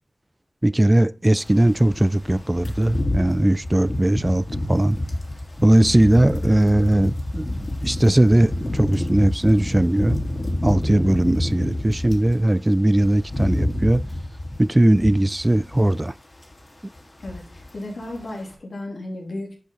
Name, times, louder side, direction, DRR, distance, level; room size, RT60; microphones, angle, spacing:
voice 1, 0.6-5.0 5.6-7.5 7.8-10.2 10.6-14.0 14.6-16.1, right 1 dB, 20° right, 0.4 m, -19 dB
sound 1, 1.4-12.4 12.7-16.1 16.4-16.6 17.0-17.8 18.0-18.2, left 1 dB, 40° left, 3.0 m, -28 dB
voice 2, 17.2-19.5, left 1 dB, 90° left, 3.1 m, -34 dB
10.0 x 6.6 x 3.9 m
wide cardioid pair, 65°, 0 cm